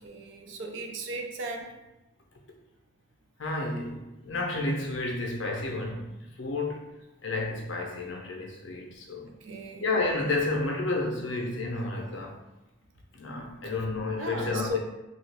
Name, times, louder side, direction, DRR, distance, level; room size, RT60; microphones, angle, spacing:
voice 1, 0.0-1.7 9.4-9.8 14.2-14.8, right 2 dB, 65° right, 0.4 m, -36 dB
voice 2, 3.4-6.9 7.2-9.3 9.8-12.4 13.1-14.8, left 2 dB, 65° left, 0.6 m, -31 dB
3.0 x 2.3 x 3.3 m
head